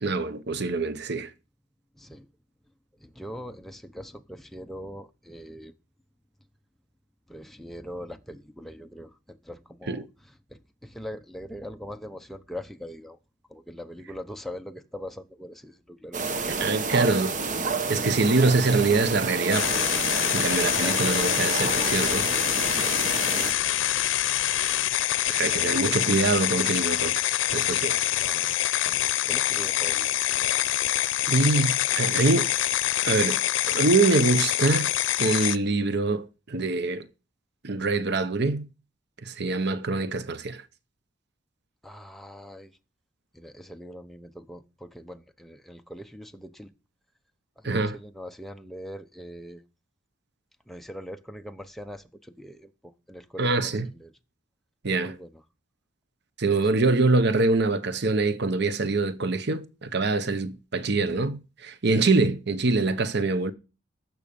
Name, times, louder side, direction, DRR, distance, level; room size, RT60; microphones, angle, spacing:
voice 1, 0.0-1.3 9.9-10.0 16.6-17.3 17.9-20.0 20.3-22.2 25.3-28.0 31.3-32.5 33.0-33.4 33.7-34.9 35.2-37.0 37.6-38.6 39.2-40.6 47.6-48.0 53.4-53.9 54.8-55.1 56.4-63.5, right 3 dB, 60° right, 0.9 m, -24 dB
voice 2, 1.9-2.3 3.0-5.7 7.3-13.2 13.5-17.1 20.8-21.0 23.3-24.1 28.2-28.6 28.8-30.2 41.8-42.7 43.3-46.7 47.6-49.6 50.7-54.1 55.0-55.4, equal, ahead, 0.9 m, -42 dB
sound 1, 16.1-23.5, right 4 dB, 40° right, 1.2 m, -29 dB
sound 2, 19.5-35.6, left 12 dB, 90° left, 0.6 m, -25 dB
15.0 x 6.2 x 5.4 m
head